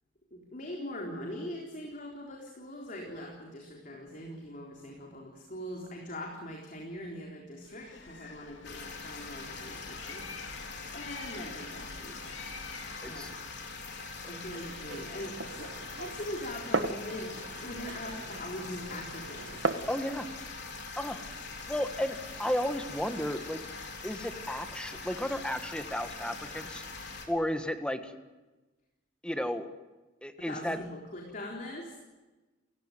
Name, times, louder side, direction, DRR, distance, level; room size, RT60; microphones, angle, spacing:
voice 1, 0.3-10.3 10.6-12.2 13.0-13.4 14.2-19.7 30.4-32.0, left 1 dB, 45° left, 0 dB, 3.9 m, -42 dB
Bird, 7.6-13.7, left 4 dB, 80° left, 2.3 m, -48 dB
sound 1, 8.6-27.3, left 4 dB, 60° left, 4.1 m, -43 dB
Glass, 14.8-19.9, right 3 dB, 70° right, 1.4 m, -37 dB
voice 2, 19.9-20.3 21.0-21.2 21.7-23.6 24.0-26.8 27.3-28.1 29.2-29.7 30.2-30.8, equal, 5° left, 8 dB, 1.6 m, -33 dB
29.5 x 16.0 x 9.3 m, 1.2 s
head